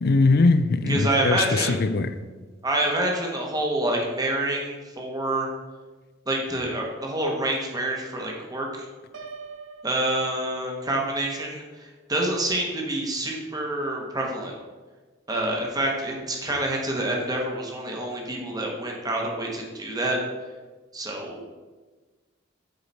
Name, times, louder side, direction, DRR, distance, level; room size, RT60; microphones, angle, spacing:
voice 1, 0.0-2.1, left 3 dB, 55° left, 0.5 m, -21 dB
voice 2, 0.9-1.8 2.6-5.5 6.3-8.9 9.8-14.5 15.3-20.2 20.9-21.4, right 1 dB, 20° right, 1.3 m, -27 dB
Piano, 9.1-11.0, right 5 dB, 70° right, 0.6 m, -43 dB
8.0 x 4.8 x 4.2 m
head